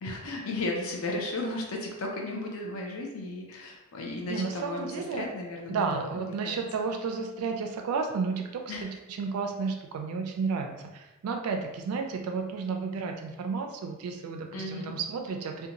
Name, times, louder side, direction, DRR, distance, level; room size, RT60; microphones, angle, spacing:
voice 1, 0.0-6.6 8.7-8.9 14.5-14.9, left 2 dB, 70° left, 0 dB, 0.4 m, -35 dB
voice 2, 4.3-5.3 5.7-8.9 9.2-15.7, right 5 dB, 80° right, 3 dB, 0.3 m, -32 dB
2.6 x 2.2 x 2.8 m, 1.0 s
head